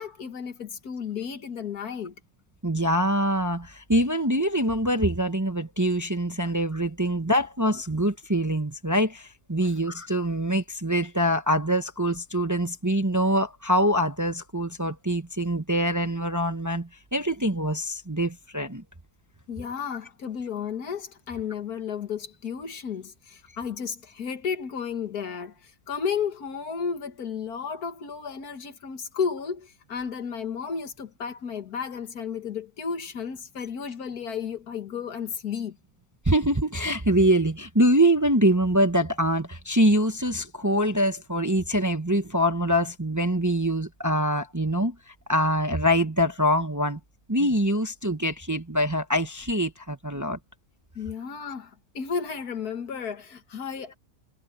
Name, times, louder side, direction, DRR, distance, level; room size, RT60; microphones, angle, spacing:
voice 1, 0.0-2.1 9.6-9.7 19.5-35.8 51.0-53.9, left 6 dB, 80° left, 2.1 m, -33 dB
voice 2, 2.6-18.8 36.2-47.0 47.3-50.4, equal, 15° right, 0.9 m, -24 dB
omnidirectional pair, 1.6 m